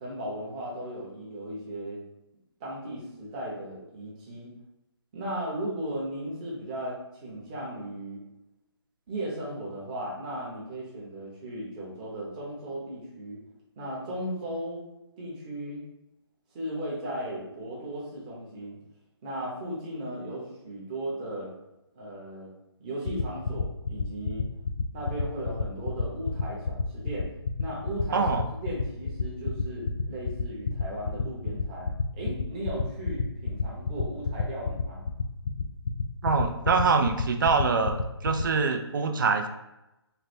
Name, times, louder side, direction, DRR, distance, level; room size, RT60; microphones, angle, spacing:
voice 1, 0.0-2.0 2.6-4.5 5.1-8.2 9.1-13.4 13.8-14.8 15.2-15.8 16.5-18.8 19.2-21.5 21.9-22.5 22.8-24.5 24.9-27.3 27.6-28.3 28.6-35.0, right 1 dB, 15° right, -5 dB, 0.8 m, -36 dB
sound 1, 23.0-38.4, left 5 dB, 80° left, 0.4 m, -28 dB
voice 2, 28.1-28.4 36.2-39.5, right 4 dB, 50° right, 5 dB, 0.4 m, -24 dB
3.3 x 2.1 x 4.2 m, 0.92 s
hypercardioid pair, 165°, 14 cm